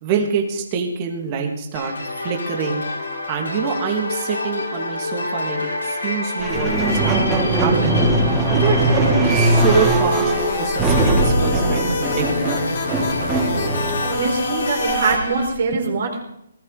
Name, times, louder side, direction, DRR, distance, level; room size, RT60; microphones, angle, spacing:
voice 1, 0.0-1.9 2.2-2.8 3.3-5.6 6.0-8.0 8.5-12.5, right 6 dB, 30° right, 3 dB, 2.1 m, -25 dB
sound 1, 1.7-15.5, left 2 dB, 90° left, 5.8 m, -28 dB
sound 2, 6.4-15.5, right 2 dB, 10° right, 3.0 m, -20 dB
sound 3, 9.3-15.2, left 4 dB, 45° left, 2.5 m, -28 dB
voice 2, 14.0-16.2, right 4 dB, 60° right, 2 dB, 4.3 m, -23 dB
19.0 x 13.5 x 4.0 m, 0.78 s
hypercardioid pair, 160°, 0 cm